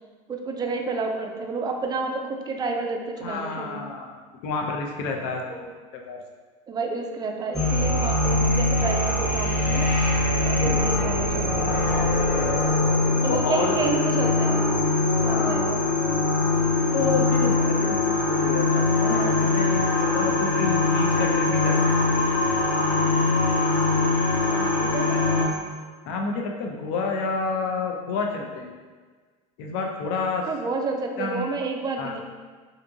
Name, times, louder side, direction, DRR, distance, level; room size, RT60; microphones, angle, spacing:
voice 1, 0.3-3.9 5.5-5.6 6.7-9.9 10.4-11.9 13.2-14.7 15.2-15.8 17.8-18.2 24.4-25.5 30.4-32.2, right 4 dB, 25° right, 3 dB, 0.3 m, -30 dB
voice 2, 3.2-5.4 5.9-6.2 10.6-10.8 12.4-12.5 13.3-13.8 15.3-15.9 16.9-21.9 26.0-28.7 29.6-30.5 31.2-31.5 32.0-32.2, left 4 dB, 65° left, 1 dB, 0.5 m, -29 dB
sound 1, 7.5-25.5, left 2 dB, 5° left, 0.9 m, -22 dB
2.6 x 2.5 x 2.6 m, 1.5 s
hypercardioid pair, 90°, 17 cm